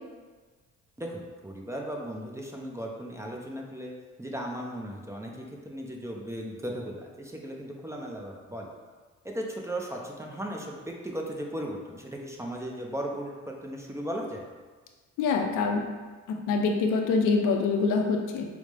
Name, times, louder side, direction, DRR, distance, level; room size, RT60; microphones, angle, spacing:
voice 1, 1.0-3.9 4.2-8.7 9.2-14.4, equal, 10° right, 0 dB, 0.5 m, -36 dB
voice 2, 15.2-15.8 16.3-18.5, left 4 dB, 90° left, 3 dB, 0.5 m, -25 dB
4.9 x 2.1 x 3.3 m, 1.4 s
cardioid pair, 90°, 30 cm